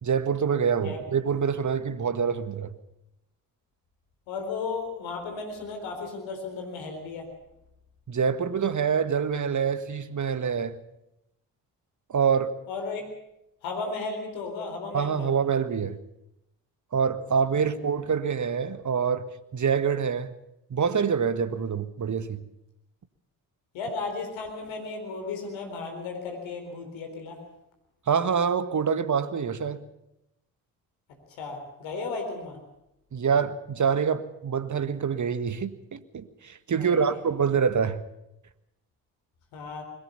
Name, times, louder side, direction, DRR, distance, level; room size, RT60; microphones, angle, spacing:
voice 1, 0.0-2.7 8.1-10.8 12.1-12.5 14.9-16.0 16.9-19.2 19.5-20.3 20.7-22.4 28.1-29.8 33.1-38.0, right 6 dB, 35° right, 1.6 m, -26 dB
voice 2, 4.3-7.3 12.7-13.0 13.6-15.3 23.7-27.4 31.4-32.6 36.8-37.2 39.5-39.8, left 4 dB, 70° left, 4.2 m, -34 dB
21.5 x 18.5 x 7.1 m
figure-of-eight pair, 40°, 48 cm